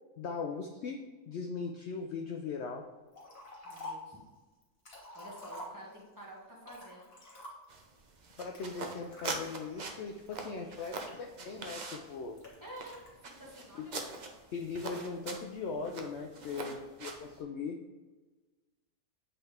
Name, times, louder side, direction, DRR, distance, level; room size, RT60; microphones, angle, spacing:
voice 1, 0.2-1.0 1.3-2.9 8.4-12.4 14.5-17.8, left 4 dB, 75° left, 3 dB, 0.6 m, -39 dB
Liquid, 3.1-4.1 4.6-6.1 6.6-7.8 8.5-9.3 9.9-11.6 12.4-13.1, left 1 dB, 40° left, 1.6 m, -48 dB
voice 2, 3.6-4.2 4.9-7.1 12.6-13.0 13.2-14.1 16.4-16.9, right 1 dB, 15° right, -5 dB, 1.3 m, -50 dB
sound 1, 7.7-17.4, right 3 dB, 65° right, 0.4 m, -43 dB
7.9 x 4.2 x 3.5 m, 1.3 s
omnidirectional pair, 1.7 m